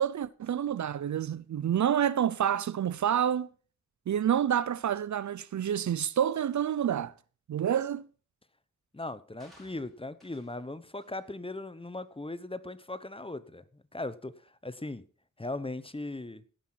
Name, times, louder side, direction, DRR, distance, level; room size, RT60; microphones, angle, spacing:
voice 1, 0.0-3.5 4.1-7.1 7.5-8.1, right 9 dB, 65° right, 0.5 m, -28 dB
voice 2, 8.9-15.0 15.4-16.4, left 2 dB, 15° left, 0.9 m, -39 dB
sound 1, 9.4-10.6 11.0-11.3 11.8-12.0, equal, ahead, 4.5 m, -61 dB
17.0 x 5.7 x 4.4 m
cardioid pair, 40°, 31 cm